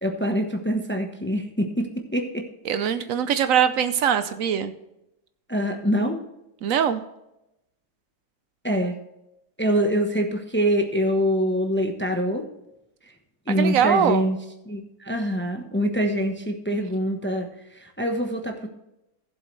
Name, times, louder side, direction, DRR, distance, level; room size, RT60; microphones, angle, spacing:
voice 1, 0.0-2.5 2.7-2.9 5.5-6.2 8.6-8.9 9.6-12.5 13.5-14.4 14.7-17.5 17.7-18.7, equal, 20° left, 4 dB, 0.3 m, -25 dB
voice 2, 2.7-4.7 6.6-7.0 13.5-14.3, right 8 dB, 75° right, 11 dB, 0.7 m, -22 dB
15.0 x 7.9 x 3.2 m, 0.88 s
omnidirectional pair, 2.2 m